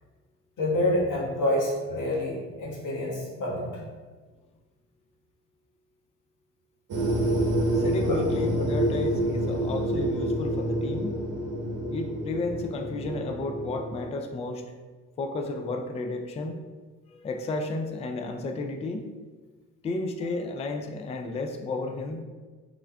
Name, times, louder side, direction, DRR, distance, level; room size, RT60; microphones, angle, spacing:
voice 1, 0.6-3.8 8.1-8.2, left 1 dB, 55° left, -4 dB, 1.3 m, -27 dB
sound 1, 6.9-14.0, right 1 dB, 55° right, 0.9 m, -28 dB
voice 2, 7.7-11.2 11.9-14.6 15.2-16.6 17.1-19.1 19.8-22.2, left 2 dB, 20° left, 4 dB, 0.3 m, -32 dB
3.5 x 3.4 x 2.2 m, 1.4 s
hypercardioid pair, 65°, 38 cm